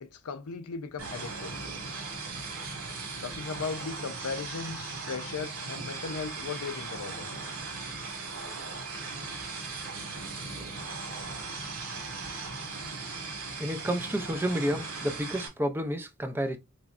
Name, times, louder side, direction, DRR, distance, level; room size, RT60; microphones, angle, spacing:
voice 1, 0.0-1.5 3.2-7.3, left 5 dB, 85° left, 0.5 m, -37 dB
sound 1, 1.0-15.5, right 3 dB, 80° right, 1.7 m, -38 dB
voice 2, 13.6-16.6, equal, 10° right, 0.4 m, -30 dB
4.1 x 3.0 x 2.4 m
head